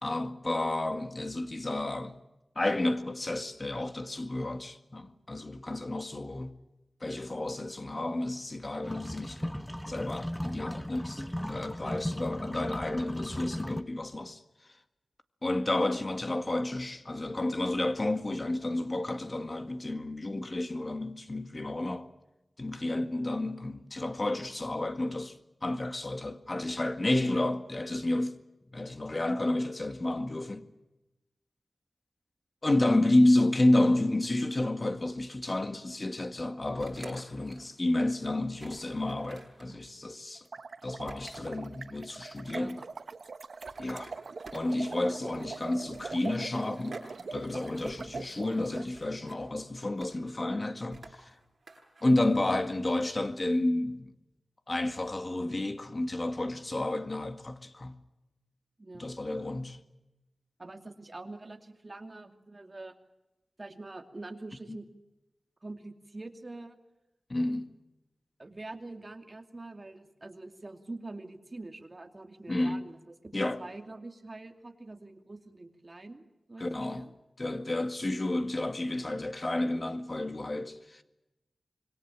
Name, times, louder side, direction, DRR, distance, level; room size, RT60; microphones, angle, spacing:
voice 1, 0.0-2.2 2.6-6.5 7.0-14.4 15.4-22.1 22.6-25.4 25.6-28.3 28.7-30.6 32.6-40.5 40.8-42.8 43.8-44.2 44.5-47.0 47.3-51.4 52.0-54.1 54.7-58.0 58.9-59.8 64.7-64.8 67.3-67.7 72.5-72.8 73.3-73.7 76.6-77.1 77.4-81.0, left 1 dB, 35° left, 1.9 m, -31 dB
sound 1, 8.8-13.8, equal, 5° left, 1.0 m, -37 dB
sound 2, 36.8-37.7 38.1-38.2 38.6-39.7 41.1-41.6 42.2-42.9 43.6-45.0 45.9-47.1 47.4-48.0 48.9-49.4 49.8-50.3 50.9-52.1, right 3 dB, 50° right, 7.8 m, -50 dB
sound 3, 40.4-48.9, right 4 dB, 75° right, 1.2 m, -42 dB
voice 2, 42.5-42.8 58.8-59.1 60.6-62.9 63.6-64.9 65.6-66.8 68.4-77.1, right 2 dB, 35° right, 2.6 m, -45 dB
26.5 x 22.5 x 7.5 m
wide cardioid pair, 95°, 0 cm